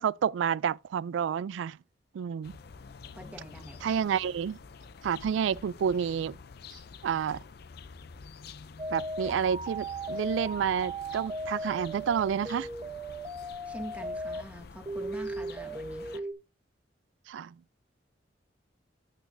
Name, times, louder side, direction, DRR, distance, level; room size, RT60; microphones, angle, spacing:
voice 1, 0.0-1.8 2.1-2.5 3.8-4.6 5.0-6.4 7.0-7.4 8.9-12.7 17.3-17.5, right 7 dB, 80° right, 0.3 m, -29 dB
sound 1, 2.4-16.2, left 5 dB, 55° left, 0.5 m, -48 dB
voice 2, 3.1-3.9 13.6-16.3, right 1 dB, 10° right, 1.5 m, -44 dB
sound 2, 8.8-14.4 14.9-16.3, right 1 dB, 25° right, 0.9 m, -37 dB
9.0 x 8.5 x 2.6 m
head